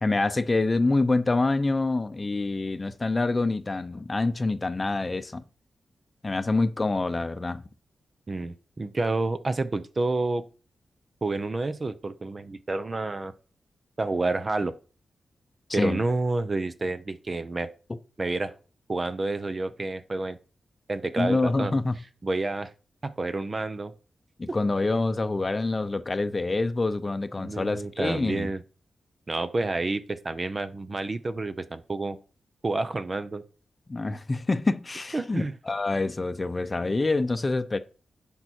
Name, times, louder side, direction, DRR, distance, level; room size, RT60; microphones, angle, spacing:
voice 1, 0.0-5.4 6.2-7.6 15.7-16.0 21.2-22.0 24.4-28.5 33.9-37.8, left 3 dB, 30° left, 0.7 m, -26 dB
voice 2, 8.3-10.4 11.2-13.3 14.0-14.7 15.7-17.7 18.2-18.5 18.9-20.4 20.9-21.7 22.2-22.7 23.0-23.9 24.5-24.6 27.4-28.6 29.3-32.2 32.6-33.4 35.1-35.6, right 2 dB, 35° right, 0.8 m, -29 dB
10.5 x 5.6 x 4.6 m
wide cardioid pair, 90°, 0 cm